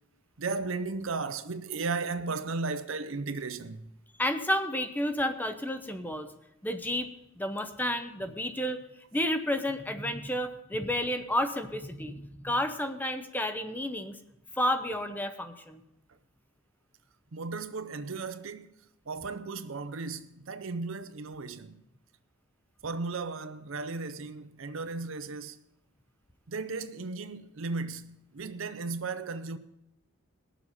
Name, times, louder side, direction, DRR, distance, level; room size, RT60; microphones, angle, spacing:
voice 1, 0.4-3.9 17.3-18.7 19.1-21.8 22.8-25.6 26.5-29.6, right 4 dB, 65° right, 0.7 m, -35 dB
voice 2, 4.2-6.3 6.6-7.1 7.4-8.8 9.1-14.2 14.6-15.8, left 1 dB, 10° left, 0.6 m, -31 dB
20.0 x 7.1 x 4.2 m
head